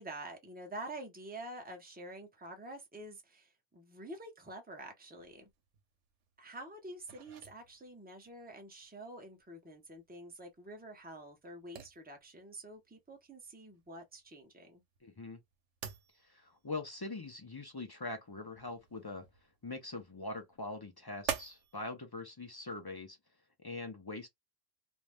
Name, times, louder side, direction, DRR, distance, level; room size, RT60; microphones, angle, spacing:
voice 1, 0.0-5.5 6.4-14.8, right 1 dB, 10° right, 0.7 m, -48 dB
sound 1, 5.2-21.8, right 8 dB, 85° right, 1.0 m, -48 dB
voice 2, 15.0-15.4 16.2-19.3 19.6-23.2 23.6-24.3, left 2 dB, 35° left, 0.4 m, -43 dB
2.6 x 2.1 x 3.3 m
omnidirectional pair, 1.2 m